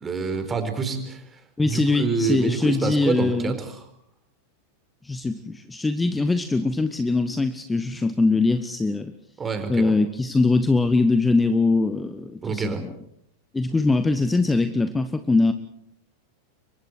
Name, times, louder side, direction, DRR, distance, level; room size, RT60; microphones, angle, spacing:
voice 1, 0.0-3.8 9.4-9.9 12.4-12.8, right 4 dB, 20° right, 8 dB, 4.4 m, -27 dB
voice 2, 1.6-3.5 5.0-9.1 9.7-12.9 13.5-15.5, left 3 dB, 10° left, 11 dB, 1.2 m, -22 dB
29.5 x 24.0 x 4.6 m, 0.72 s
figure-of-eight pair, 90°, 0 cm